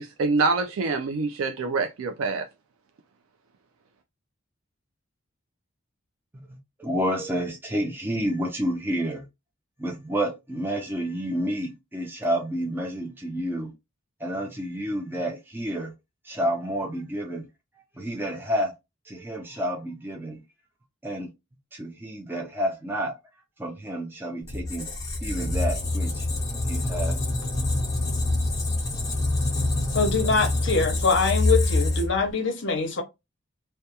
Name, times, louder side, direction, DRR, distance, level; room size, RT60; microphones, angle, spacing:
voice 1, 0.0-2.5, right 3 dB, 80° right, 0.4 m, -25 dB
voice 2, 6.8-9.3 9.8-13.7 14.2-15.9 16.2-17.5 18.0-18.8 19.1-20.4 21.0-21.3 21.7-23.2 23.6-24.9 25.2-26.3 26.7-27.2, equal, 10° right, 0.4 m, -29 dB
Squeak, 24.5-32.3, left 2 dB, 15° left, 0.7 m, -26 dB
voice 3, 29.9-33.0, left 4 dB, 55° left, 0.6 m, -24 dB
2.3 x 2.2 x 2.7 m
head